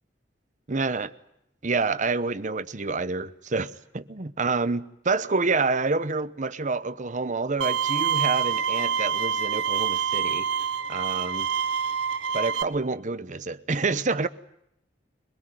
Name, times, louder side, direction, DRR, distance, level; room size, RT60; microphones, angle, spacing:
voice 1, 0.7-1.1 1.6-10.5 10.9-11.5 12.3-14.3, right 3 dB, 45° right, 0.9 m, -28 dB
Bowed string instrument, 7.6-12.6, right 7 dB, 85° right, 1.2 m, -26 dB
23.0 x 21.5 x 9.0 m
head